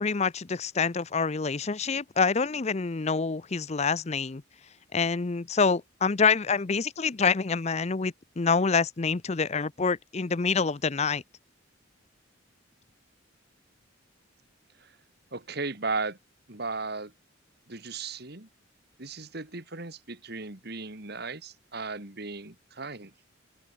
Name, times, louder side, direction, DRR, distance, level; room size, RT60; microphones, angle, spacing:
voice 1, 0.0-4.4 4.9-11.2, left 5 dB, 35° left, 0.6 m, -26 dB
voice 2, 15.3-16.2 16.5-17.1 17.7-18.5 19.0-23.1, right 3 dB, 55° right, 2.8 m, -36 dB
open air
head